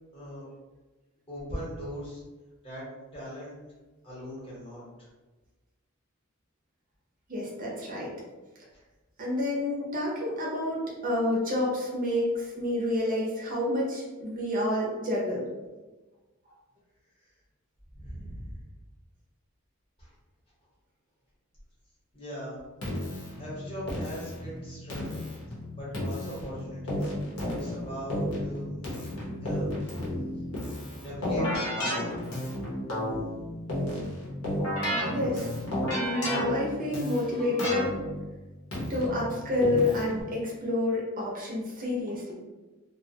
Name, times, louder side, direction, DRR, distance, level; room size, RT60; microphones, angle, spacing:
voice 1, 0.1-0.4 1.3-2.2 2.6-2.8 3.1-3.5 4.0-5.1 17.9-18.6 20.0-20.1 22.1-22.6 23.4-25.1 25.8-27.1 27.4-29.8 31.0-32.2, equal, 25° left, -7 dB, 0.9 m, -40 dB
voice 2, 7.3-8.1 9.2-15.5 35.1-35.5 35.9-37.9 38.9-42.3, left 1 dB, 40° right, -4 dB, 0.5 m, -29 dB
Keyboard (musical), 22.8-40.2, left 1 dB, 75° left, 0.8 m, -33 dB
2.3 x 2.1 x 2.7 m, 1.2 s
head